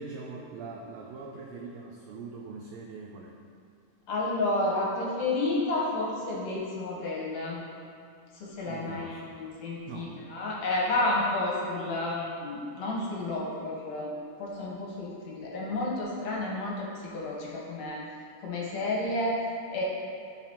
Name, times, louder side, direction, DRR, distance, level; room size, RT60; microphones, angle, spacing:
voice 1, 0.0-3.4 8.7-9.4 9.9-10.2, right 4 dB, 85° right, 0 dB, 1.5 m, -42 dB
voice 2, 4.1-7.6 8.3-14.1 14.4-18.0 18.4-19.8, left 2 dB, 65° left, -4 dB, 2.4 m, -31 dB
12.0 x 5.9 x 3.0 m, 2.4 s
omnidirectional pair, 3.7 m